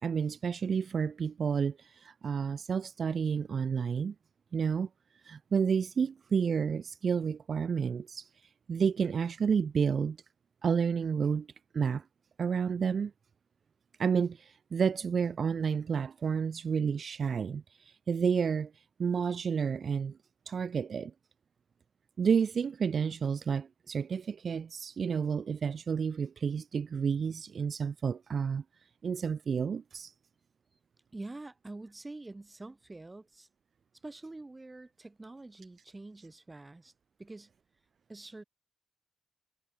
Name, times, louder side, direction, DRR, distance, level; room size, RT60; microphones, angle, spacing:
voice 1, 0.0-4.1 4.5-4.9 5.2-8.3 8.7-10.2 10.6-11.5 11.7-12.0 12.4-13.1 14.0-18.7 19.0-20.2 20.5-21.1 22.2-28.6 29.0-30.1, right 6 dB, 50° right, 3.2 m, -30 dB
voice 2, 31.1-33.5 34.0-36.9 37.2-37.5 38.1-38.4, right 2 dB, 20° right, 5.6 m, -46 dB
cardioid pair, 100°, 0 cm